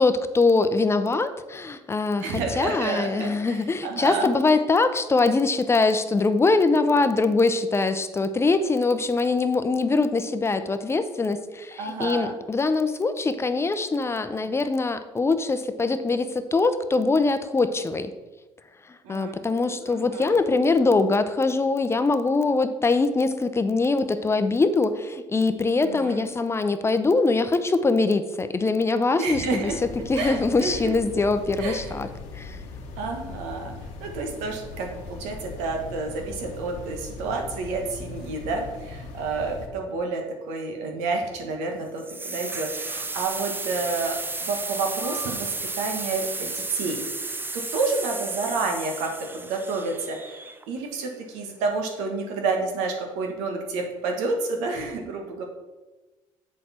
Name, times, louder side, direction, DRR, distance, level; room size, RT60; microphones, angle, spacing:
voice 1, 0.0-18.1 18.9-29.7 30.1-32.1 32.3-32.6, left 3 dB, 20° left, 11 dB, 0.7 m, -23 dB
voice 2, 2.2-4.3 11.8-12.4 19.0-19.3 19.8-20.6 25.8-26.3 29.2-29.8 30.1-30.9 31.6-31.9 33.0-33.7 34.0-47.0 47.3-55.5, right 3 dB, 90° right, 3 dB, 1.6 m, -30 dB
sound 1, 29.7-39.7, left 3 dB, 85° left, 1.3 m, -39 dB
sound 2, 42.0-50.9, right 3 dB, 20° right, 0.7 m, -33 dB
7.8 x 6.6 x 4.4 m, 1.2 s
cardioid pair, 90°, 12 cm